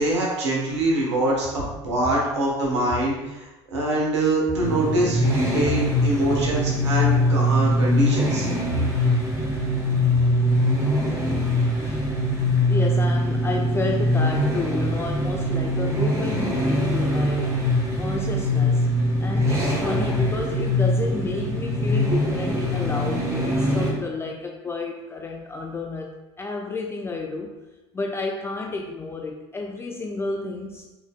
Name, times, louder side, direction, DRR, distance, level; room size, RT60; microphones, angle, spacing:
voice 1, 0.0-1.5 1.8-8.4, right 1 dB, 80° right, -3 dB, 1.0 m, -24 dB
sound 1, 4.6-23.9, left 1 dB, 20° right, 1.2 m, -22 dB
voice 2, 11.0-11.4 11.8-12.2 12.7-17.6 18.0-18.9 19.2-26.1 26.4-27.5 27.9-30.9, left 3 dB, 15° left, 2 dB, 0.4 m, -31 dB
4.4 x 4.0 x 2.2 m, 1.1 s
figure-of-eight pair, 70°, 15 cm